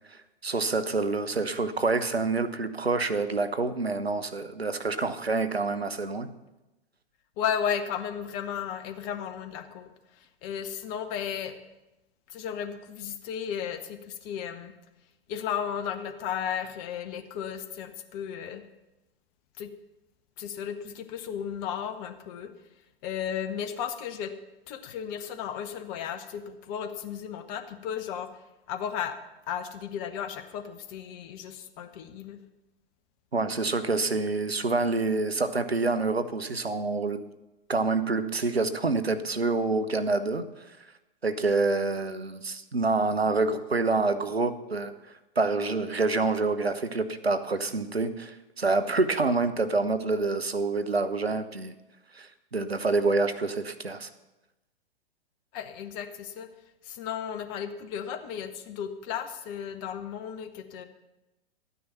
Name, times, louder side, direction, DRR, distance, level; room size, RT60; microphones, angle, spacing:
voice 1, 0.1-6.3 33.3-37.3 37.7-40.4 41.2-44.9 45.4-51.7 52.1-54.1, right 3 dB, 90° right, 11 dB, 0.9 m, -27 dB
voice 2, 7.4-11.6 12.3-14.7 15.3-18.6 19.6-19.7 20.4-22.5 23.0-24.3 24.7-28.4 28.7-29.2 29.5-32.4 55.5-56.5 56.8-60.8, left 8 dB, 30° left, 9 dB, 1.0 m, -34 dB
13.0 x 9.5 x 5.7 m, 1.0 s
figure-of-eight pair, 110°, 30 cm